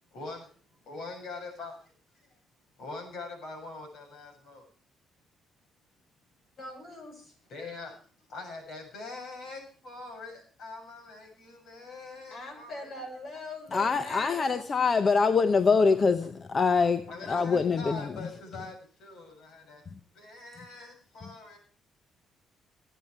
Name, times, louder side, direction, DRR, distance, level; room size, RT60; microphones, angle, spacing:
voice 1, 0.1-0.5 0.8-2.3 2.8-4.7 7.5-8.0 8.3-13.0 14.2-14.3 15.9-16.0 17.1-19.8 20.1-21.6, left 3 dB, 75° left, 7.2 m, -43 dB
voice 2, 6.6-7.3 12.3-14.7, left 1 dB, 55° left, 6.9 m, -41 dB
voice 3, 13.7-18.0, left 5 dB, 40° left, 0.9 m, -24 dB
21.0 x 9.3 x 4.6 m
cardioid pair, 90°, 0 cm